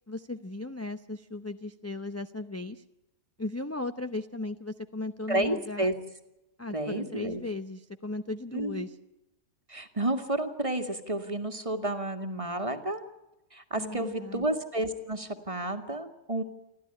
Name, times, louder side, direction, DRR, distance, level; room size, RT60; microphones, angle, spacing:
voice 1, 0.0-2.8 3.4-5.9 6.6-9.0 13.8-14.4, left 2 dB, 15° left, 8 dB, 0.5 m, -36 dB
voice 2, 5.3-5.9 6.7-7.4 8.5-8.8 9.7-13.0 13.5-16.4, right 1 dB, 20° right, 7 dB, 1.9 m, -31 dB
29.0 x 12.5 x 10.0 m, 0.98 s
omnidirectional pair, 1.5 m